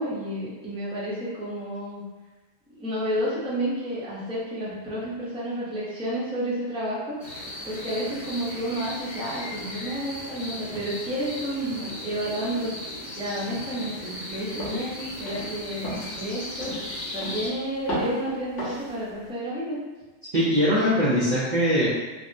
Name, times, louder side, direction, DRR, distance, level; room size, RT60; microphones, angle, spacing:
voice 1, 0.0-2.0 2.7-7.1 7.6-12.7 13.1-16.8 17.1-19.8, right 1 dB, 5° right, -8 dB, 0.5 m, -31 dB
sound 1, 7.2-17.5, left 1 dB, 45° left, 0.7 m, -37 dB
sound 2, 14.6-14.9 15.3-15.6 15.8-16.2 16.6-16.9 17.2-17.6 17.9-18.2 18.6-18.9, left 1 dB, 80° left, 1.4 m, -32 dB
voice 2, 20.3-21.9, equal, 50° right, -9 dB, 0.5 m, -21 dB
3.4 x 2.0 x 2.6 m, 1.2 s
omnidirectional pair, 1.2 m